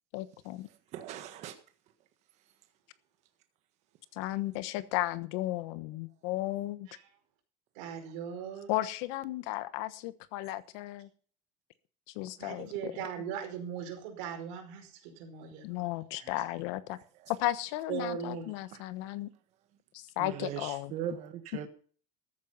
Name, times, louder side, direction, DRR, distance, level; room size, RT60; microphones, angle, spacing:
voice 1, 0.1-0.7 4.1-6.9 8.7-11.1 12.1-12.9 15.6-17.0 17.3-19.3 19.9-20.9, left 16 dB, 75° left, 1.2 m, -34 dB
voice 2, 0.7-1.6 8.0-8.1 16.9-17.3 18.7-18.8 20.2-21.7, right 10 dB, 50° right, 1.5 m, -40 dB
voice 3, 7.7-8.7 12.4-15.7 16.1-16.4 17.9-18.5, right 7 dB, 85° right, 4.9 m, -39 dB
14.0 x 9.1 x 5.7 m
cardioid pair, 160°, 15 cm